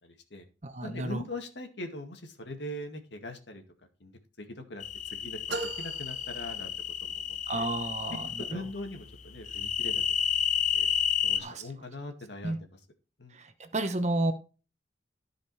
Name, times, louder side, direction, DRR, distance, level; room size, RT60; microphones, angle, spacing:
voice 1, 0.0-0.5 0.8-3.6 4.0-6.7 7.0-7.7 8.4-10.3 10.7-10.9 11.2-12.8 13.2-13.4, left 1 dB, 70° left, 5 dB, 2.1 m, -41 dB
voice 2, 0.6-1.2 7.5-8.2 11.4-11.6 12.4-12.6 13.4-13.5 13.7-14.3, right 2 dB, 40° right, 8 dB, 1.0 m, -30 dB
sound 1, 4.8-8.5 9.5-11.4, left 8 dB, 40° left, 0.7 m, -31 dB
sound 2, 5.5-7.2, right 3 dB, 65° right, 1.3 m, -39 dB
13.5 x 5.2 x 4.8 m, 0.33 s
head